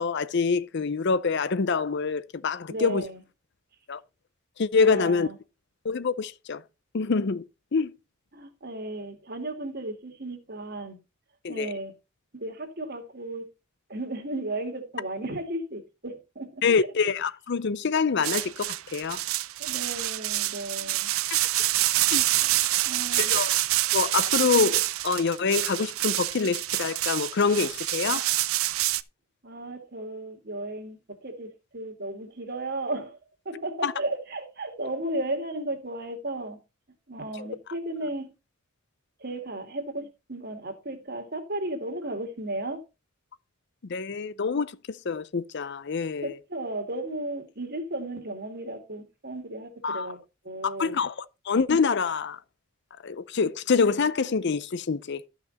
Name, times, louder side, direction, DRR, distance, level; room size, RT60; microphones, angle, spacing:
voice 1, 0.0-3.1 3.9-4.0 4.6-5.3 5.8-6.6 6.9-7.4 7.7-7.9 11.4-11.7 16.6-19.2 22.1-22.2 23.2-23.6 23.9-28.3 33.8-33.9 37.4-37.5 43.9-44.7 45.0-46.4 49.8-50.1 50.6-52.4 53.0-55.2, left 5 dB, 55° left, 0.5 m, -26 dB
voice 2, 2.7-3.2 4.8-5.4 8.3-11.0 11.5-11.9 12.3-13.4 13.9-16.8 19.6-21.1 22.4-22.5 22.9-23.3 29.4-31.5 31.7-33.2 33.5-36.6 37.1-38.3 39.2-42.8 46.2-50.2 50.4-51.0, right 2 dB, 45° right, 2.4 m, -34 dB
sound 1, 18.2-29.0, right 16 dB, 75° right, 0.5 m, -26 dB
13.0 x 5.9 x 4.1 m
head